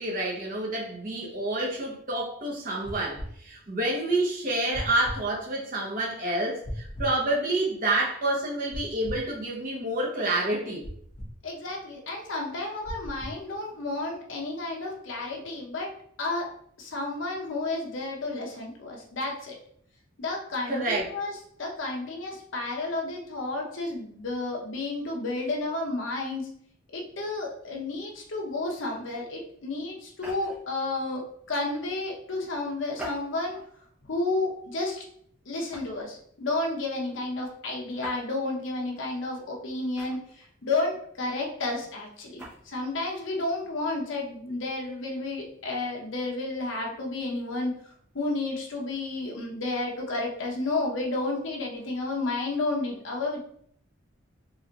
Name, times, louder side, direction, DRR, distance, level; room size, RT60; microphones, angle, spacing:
voice 1, 0.0-10.9 20.7-21.1, right 2 dB, 40° right, -3 dB, 0.9 m, -28 dB
sound 1, 2.8-3.3 4.7-5.2 6.6-7.1 8.7-9.3 10.8-11.3 12.8-13.4, equal, 40° left, 1.0 m, -36 dB
voice 2, 11.4-15.9 16.2-16.5 16.8-19.6 20.2-21.3 21.6-26.5 26.9-31.2 31.5-33.6 34.0-35.0 35.5-40.2 40.6-47.8 48.1-53.4, left 2 dB, 70° left, 0 dB, 0.8 m, -31 dB
sound 2, 30.1-30.7 32.9-33.7 34.3-34.6 35.7-36.1 38.0-38.3 40.0-40.5 42.2-42.6, right 1 dB, 5° right, 0.8 m, -42 dB
3.9 x 2.5 x 2.9 m, 0.64 s
head